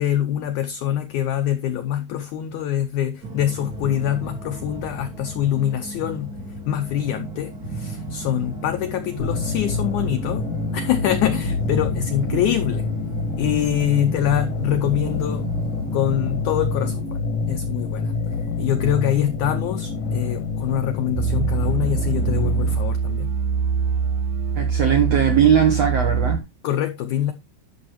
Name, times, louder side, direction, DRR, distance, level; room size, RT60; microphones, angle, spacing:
voice 1, 0.0-6.3 6.7-10.5 10.7-12.9 13.4-15.5 15.9-18.1 18.6-23.3 26.6-27.3, left 11 dB, 80° left, 1.8 m, -24 dB
sound 1, 3.2-17.1, right 2 dB, 45° right, 1.2 m, -34 dB
sound 2, 9.2-22.7, left 4 dB, 55° left, 1.4 m, -27 dB
sound 3, 21.2-26.4, right 6 dB, 80° right, 1.9 m, -23 dB
voice 2, 24.5-26.4, right 8 dB, 65° right, 1.6 m, -19 dB
11.0 x 6.5 x 3.0 m
omnidirectional pair, 4.3 m